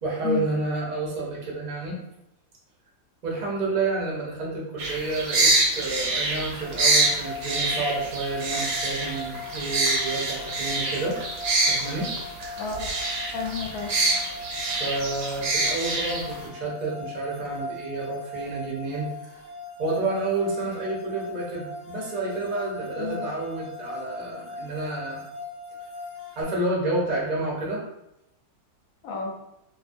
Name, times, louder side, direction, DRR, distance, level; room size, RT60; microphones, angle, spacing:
voice 1, 0.0-2.0 3.2-11.2 11.6-12.1 14.7-19.1 19.8-25.2 26.4-27.8, right 2 dB, 50° right, -4 dB, 0.5 m, -30 dB
sound 1, 4.8-16.5, right 2 dB, 70° right, 0.8 m, -26 dB
sound 2, 6.6-26.4, left 1 dB, 40° left, 0.4 m, -39 dB
voice 2, 12.6-12.9 13.3-13.9 23.0-23.3 29.0-29.4, left 6 dB, 65° left, 0 dB, 0.9 m, -31 dB
2.5 x 2.4 x 2.5 m, 0.84 s
omnidirectional pair, 1.8 m